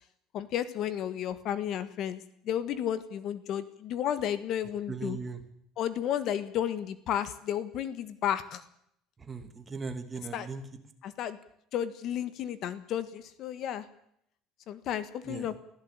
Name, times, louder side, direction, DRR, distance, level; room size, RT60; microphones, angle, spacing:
voice 1, 0.3-5.2 5.8-8.6 10.3-10.5 11.0-11.4 11.7-13.8 14.7-15.5, left 10 dB, 45° left, 14 dB, 1.4 m, -32 dB
voice 2, 4.9-5.4 9.3-10.6 15.3-15.5, right 5 dB, 15° right, 7 dB, 2.4 m, -38 dB
25.0 x 16.0 x 8.8 m, 0.72 s
cardioid pair, 170°, 0 cm